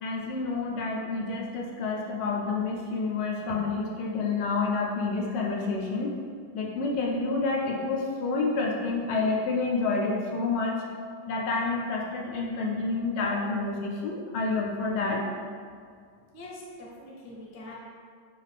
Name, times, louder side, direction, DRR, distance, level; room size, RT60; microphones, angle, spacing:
voice 1, 0.0-6.1 6.5-10.8 11.3-15.2, left 3 dB, 75° left, -1 dB, 1.2 m, -29 dB
voice 2, 16.3-17.7, left 1 dB, 45° left, -5 dB, 0.7 m, -43 dB
4.8 x 2.4 x 3.2 m, 2.1 s
omnidirectional pair, 2.0 m